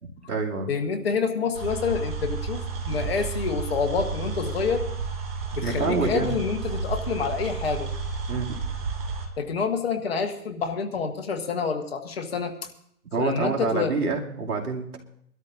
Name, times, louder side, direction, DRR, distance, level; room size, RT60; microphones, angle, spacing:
voice 1, 0.0-0.7 2.9-3.1 5.6-6.4 8.3-8.5 13.1-15.0, right 4 dB, 75° right, 0 dB, 2.7 m, -27 dB
voice 2, 0.7-4.8 5.5-7.9 9.4-12.5 13.2-13.9, left 5 dB, 40° left, 4 dB, 1.4 m, -27 dB
sound 1, 1.5-9.3, right 4 dB, 35° right, 2.5 m, -31 dB
24.5 x 12.5 x 2.6 m, 0.68 s
hypercardioid pair, 160°, 45 cm